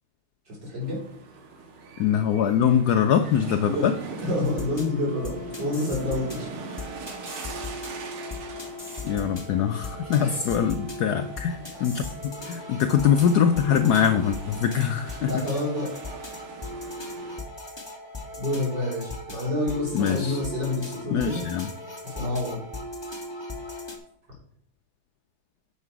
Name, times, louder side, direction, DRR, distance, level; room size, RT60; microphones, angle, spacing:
voice 1, 0.5-1.0 3.6-3.9 4.2-6.5 10.2-10.4 15.2-15.9 18.4-21.4 22.0-22.6, left 2 dB, 55° right, -4 dB, 4.0 m, -28 dB
sound 1, 0.8-17.4, right 4 dB, 80° right, 2.1 m, -43 dB
voice 2, 2.0-3.9 9.0-15.4 19.9-20.4 21.1-21.7, left 8 dB, 85° left, 7 dB, 0.8 m, -23 dB
sound 2, 4.4-24.0, left 1 dB, 20° left, 0.8 m, -38 dB
9.6 x 5.8 x 4.6 m, 0.66 s
omnidirectional pair, 2.3 m